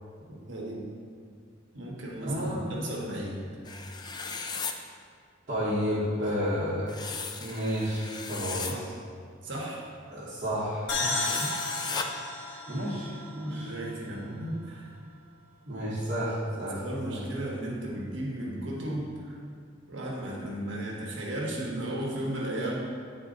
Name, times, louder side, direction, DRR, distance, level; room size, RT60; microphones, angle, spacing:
voice 1, 0.3-0.8 1.7-3.4 6.3-6.7 8.6-8.9 9.4-9.9 11.0-11.8 12.5-12.6 13.4-14.9 16.8-19.4 19.9-22.8, right 1 dB, 75° right, -3 dB, 1.3 m, -35 dB
voice 2, 2.2-2.7 5.5-7.0 7.4-8.7 10.1-10.9 12.7-13.7 14.2-14.3 15.7-16.8 17.1-17.2, equal, 45° right, -10 dB, 1.5 m, -31 dB
sound 1, 3.7-4.7 6.9-8.8 11.1-12.1, left 5 dB, 20° left, 0.4 m, -36 dB
sound 2, 10.9-14.4, left 3 dB, 75° left, 1.1 m, -34 dB
9.8 x 4.2 x 3.9 m, 2.2 s
head